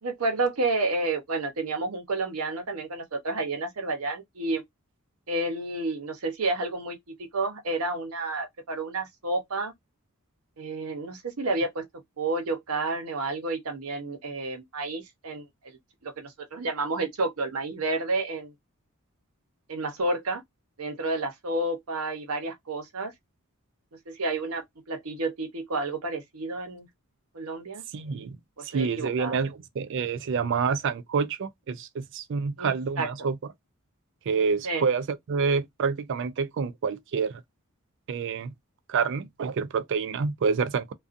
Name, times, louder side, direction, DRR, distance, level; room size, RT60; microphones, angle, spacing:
voice 1, 0.0-4.6 5.3-9.7 10.6-11.8 12.2-15.5 16.0-18.5 19.7-20.4 20.8-23.1 24.1-26.9 27.3-27.8 28.6-29.4 32.6-33.1 34.6-34.8, right 2 dB, 80° right, 0.8 m, -30 dB
voice 2, 27.9-28.4 28.7-33.4 34.3-37.4 38.1-38.5 38.9-40.9, right 5 dB, 60° right, 0.4 m, -28 dB
2.5 x 2.3 x 2.5 m
head